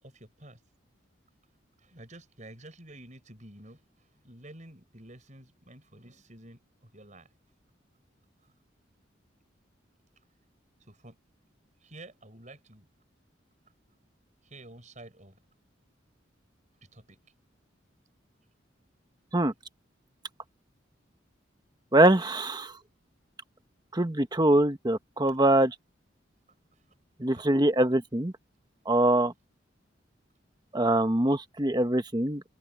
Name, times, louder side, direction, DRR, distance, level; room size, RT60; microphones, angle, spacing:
voice 1, 0.0-0.6 1.8-3.8 4.2-6.6 6.9-7.3 10.9-11.2 11.8-12.9 14.4-15.3 16.9-17.2 26.7-26.8, right 1 dB, 40° right, 6.1 m, -50 dB
voice 2, 21.9-22.7 23.9-25.7 27.2-28.3 28.9-29.3 30.7-32.4, right 1 dB, 20° right, 1.2 m, -23 dB
open air
head